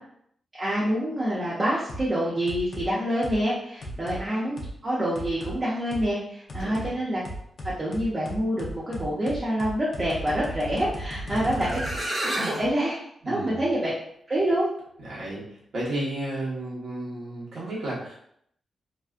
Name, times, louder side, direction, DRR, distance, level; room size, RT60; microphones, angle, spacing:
voice 1, 0.6-4.6 4.8-7.2 7.8-11.8 12.5-13.0 13.3-13.9 14.3-14.7, equal, 25° right, -8 dB, 0.6 m, -26 dB
sound 1, 1.9-2.1 2.5-2.9 3.2-3.4 3.8-4.2 4.6-4.7 5.1-5.5 5.9-6.0 6.5-6.9 7.2-12.5, right 1 dB, 55° left, 0.5 m, -36 dB
voice 2, 3.8-4.1 6.6-6.9 11.3-11.7 13.2-13.6 15.0-15.4 15.7-18.2, right 1 dB, 75° right, -6 dB, 1.1 m, -33 dB
sound 2, 11.3-11.4 11.6-12.7, right 1 dB, 55° right, 1.2 m, -29 dB
2.6 x 2.2 x 2.4 m, 0.70 s
wide cardioid pair, 110°, 0 cm